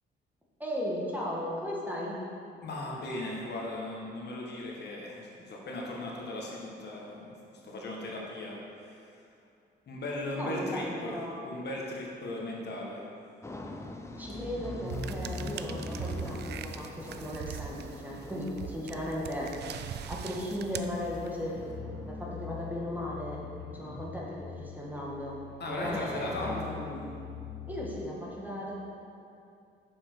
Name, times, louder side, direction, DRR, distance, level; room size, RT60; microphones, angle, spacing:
voice 1, 0.6-2.1 10.4-11.3 14.2-23.4 23.7-25.4 25.7-27.0 27.7-28.8, left 1 dB, 10° right, -4 dB, 1.7 m, -36 dB
voice 2, 2.6-7.3 7.6-9.2 9.9-13.0 25.6-26.8, left 1 dB, 55° left, -2 dB, 1.5 m, -37 dB
sound 1, 13.4-22.7, left 1 dB, 15° left, 0.7 m, -43 dB
sound 2, 14.9-21.5, right 9 dB, 60° right, 0.4 m, -42 dB
sound 3, 21.5-28.1, left 7 dB, 75° left, 1.0 m, -43 dB
7.1 x 6.9 x 4.6 m, 2.5 s
cardioid pair, 90°, 20 cm